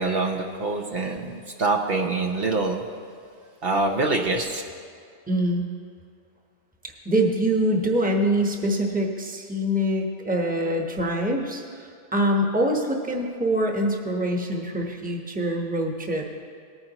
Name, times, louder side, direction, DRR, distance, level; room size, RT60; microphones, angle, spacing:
voice 1, 0.0-2.8 3.6-4.6, right 3 dB, 60° right, 2 dB, 0.9 m, -25 dB
voice 2, 5.3-5.6 7.0-16.3, right 1 dB, 10° right, 1 dB, 1.0 m, -24 dB
19.0 x 9.6 x 2.9 m, 2.2 s
omnidirectional pair, 1.1 m